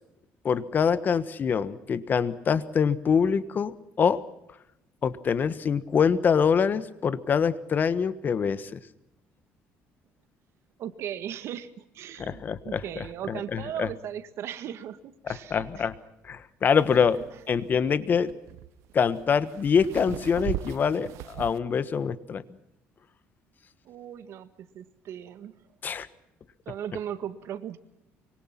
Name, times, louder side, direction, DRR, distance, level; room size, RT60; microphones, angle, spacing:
voice 1, 0.4-4.2 5.0-8.8 12.2-13.9 15.5-15.9 16.2-17.2 17.5-18.3 18.9-22.4 25.8-26.1, left 6 dB, 40° left, 15 dB, 1.3 m, -25 dB
voice 2, 10.8-15.9 17.1-17.2 23.8-25.6 26.6-27.8, right 10 dB, 65° right, 12 dB, 1.7 m, -38 dB
sound 1, 16.8-21.6, right 14 dB, 80° right, 0.9 m, -38 dB
25.0 x 23.5 x 5.9 m, 0.86 s
cardioid pair, 115°, 5 cm